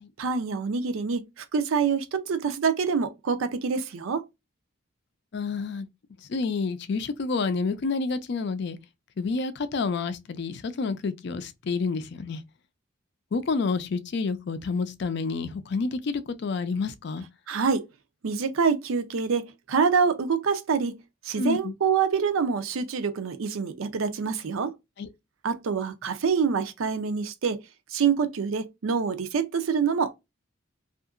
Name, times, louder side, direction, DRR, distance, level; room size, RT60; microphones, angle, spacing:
voice 1, 0.2-4.2 17.5-17.8 18.2-21.0 21.2-24.7 25.4-27.6 27.9-30.1, right 5 dB, 80° right, 0.5 m, -26 dB
voice 2, 5.3-5.9 6.2-8.8 9.2-12.4 13.3-17.2 21.4-21.7 25.0-25.1, left 4 dB, 55° left, 0.4 m, -29 dB
2.7 x 2.4 x 2.4 m
head